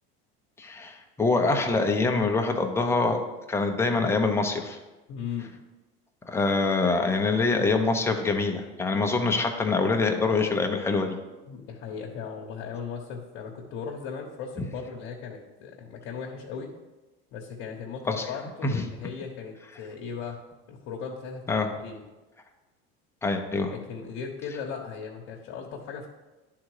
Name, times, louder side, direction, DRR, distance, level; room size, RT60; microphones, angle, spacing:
voice 1, 0.6-3.2 3.5-4.8 6.3-11.2 18.1-18.2 18.6-18.8 21.5-21.7 23.2-23.7, left 3 dB, 10° left, 3 dB, 0.7 m, -25 dB
voice 2, 5.1-5.5 11.5-16.7 17.3-20.4 20.7-22.0 23.7-26.1, left 6 dB, 50° left, -2 dB, 1.2 m, -37 dB
10.0 x 3.8 x 4.8 m, 1.1 s
supercardioid pair, 130°, 30 cm